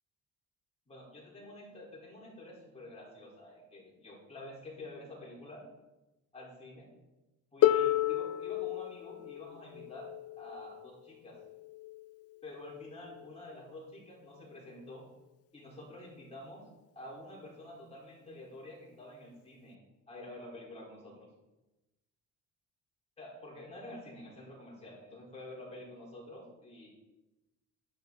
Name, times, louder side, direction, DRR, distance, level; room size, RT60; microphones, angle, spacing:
voice 1, 0.9-5.6 6.3-6.9 7.5-10.1 10.4-11.4 12.4-15.0 15.5-16.7 16.9-19.8 20.1-21.3 23.2-26.9, left 1 dB, 20° left, -5 dB, 4.4 m, -48 dB
Harp, 7.6-13.4 14.5-14.6, left 14 dB, 45° left, 0.4 m, -33 dB
11.5 x 10.5 x 4.0 m, 1.0 s
cardioid pair, 160°, 33 cm